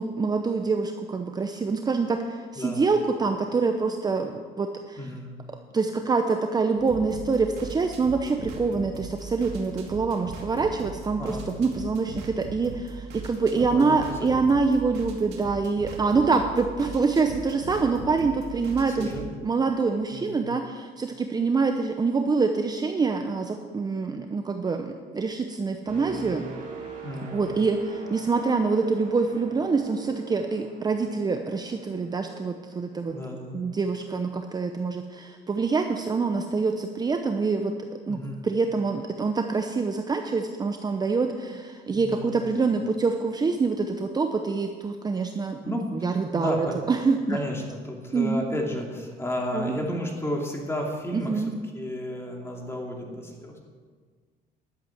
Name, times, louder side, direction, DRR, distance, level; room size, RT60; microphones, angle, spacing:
voice 1, 0.0-5.1 5.7-19.1 19.4-26.4 27.3-33.1 33.5-37.7 38.1-47.4 48.1-48.4 49.5-49.8 51.1-51.5, right 4 dB, 25° right, 5 dB, 0.8 m, -26 dB
voice 2, 2.5-2.9 5.0-5.4 11.2-11.5 13.5-14.5 18.9-19.2 20.1-20.5 27.0-27.4 33.1-33.6 38.1-38.4 41.9-42.6 45.6-46.8 47.3-51.3 51.7-53.6, equal, 15° left, 0 dB, 2.6 m, -33 dB
sound 1, 6.8-19.3, right 5 dB, 85° right, 2.3 m, -40 dB
sound 2, 25.9-33.7 34.1-34.4, right 5 dB, 50° right, 3.4 m, -42 dB
11.5 x 8.1 x 7.3 m, 1.5 s
cardioid pair, 110°, 17 cm